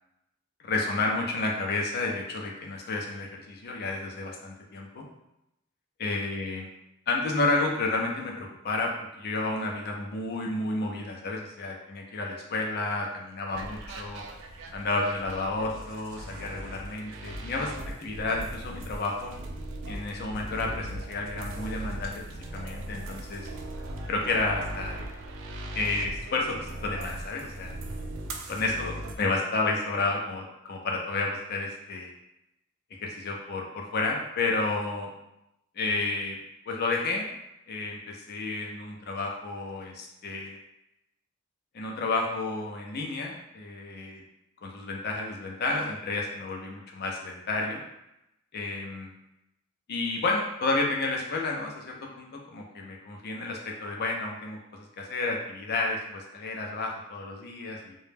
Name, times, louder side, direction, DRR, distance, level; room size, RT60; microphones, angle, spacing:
voice 1, 0.6-5.1 6.0-6.7 7.1-8.9 9.2-14.2 14.7-17.7 18.0-19.3 19.9-22.2 22.5-23.5 24.1-25.0 25.8-27.7 28.5-32.1 33.0-35.1 35.8-36.4 36.7-37.3 37.7-40.6 41.7-44.2 44.6-47.8 48.5-49.1 49.9-58.0, left 3 dB, 50° left, 0 dB, 0.5 m, -31 dB
sound 1, 13.5-29.2, right 1 dB, 65° right, 0.3 m, -39 dB
2.2 x 2.0 x 3.2 m, 0.85 s
head